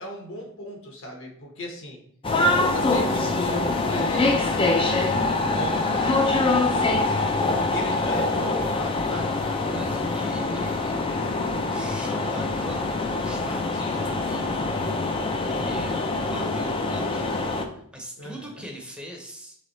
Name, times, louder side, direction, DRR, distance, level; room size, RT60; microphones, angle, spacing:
voice 1, 0.0-2.0 2.7-5.2 5.5-7.2 7.7-9.6 13.7-14.2 18.2-18.6, equal, 60° left, 1 dB, 1.0 m, -37 dB
sound 1, 2.2-17.6, left 2 dB, 25° left, 0.3 m, -24 dB
voice 2, 9.7-10.9 11.2-12.9 13.2-15.9 16.2-19.6, equal, 5° right, 0 dB, 0.7 m, -42 dB
3.5 x 3.3 x 3.9 m, 0.66 s
head